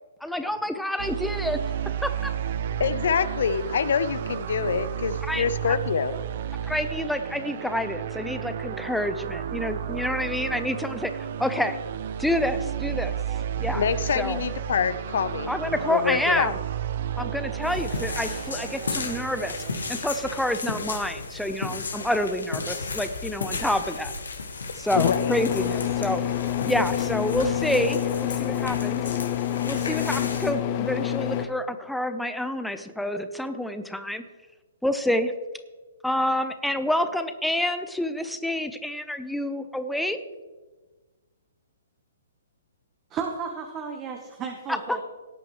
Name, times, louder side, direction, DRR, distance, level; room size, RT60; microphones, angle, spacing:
voice 1, 0.2-1.6 2.0-2.3 5.2-5.8 6.6-11.8 12.2-13.8 14.2-14.4 15.5-16.6 17.2-24.1 24.8-26.2 26.6-29.2 29.7-34.2 34.8-35.3 36.0-40.2 44.7-45.0, left 1 dB, ahead, 9 dB, 0.7 m, -28 dB
sound 1, 1.0-20.5, right 9 dB, 50° right, 0.7 m, -32 dB
voice 2, 2.8-6.1 13.7-15.5 15.9-16.5 25.0-25.3, left 7 dB, 65° left, 14 dB, 0.7 m, -25 dB
sound 2, 17.6-30.5, left 4 dB, 80° left, 1.7 m, -34 dB
sound 3, 24.9-31.5, left 12 dB, 40° left, 1.0 m, -27 dB
voice 3, 43.1-45.0, right 6 dB, 25° right, 3 dB, 1.2 m, -33 dB
18.0 x 8.8 x 3.2 m, 1.3 s
figure-of-eight pair, 125°, 0 cm